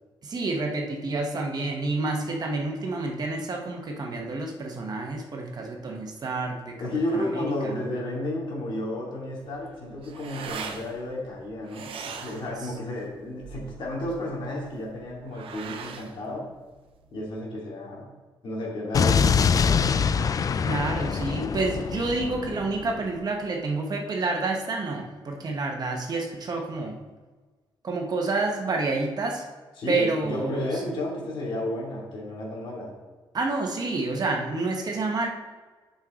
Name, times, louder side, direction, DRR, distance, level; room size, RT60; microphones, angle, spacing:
voice 1, 0.2-6.8 7.1-7.7 12.6-12.7 20.6-27.0 27.8-29.5 29.9-30.8 33.3-35.3, right 3 dB, 50° right, 1 dB, 1.3 m, -29 dB
voice 2, 6.8-16.5 17.1-18.1 18.4-20.1 29.8-32.9, left 1 dB, 70° left, -4 dB, 2.6 m, -32 dB
sound 1, 9.4-17.3, right 6 dB, 90° right, 0.7 m, -41 dB
Explosion, 18.9-23.0, left 6 dB, 40° left, 0.3 m, -24 dB
8.8 x 5.7 x 3.8 m, 1.3 s
cardioid pair, 110°, 9 cm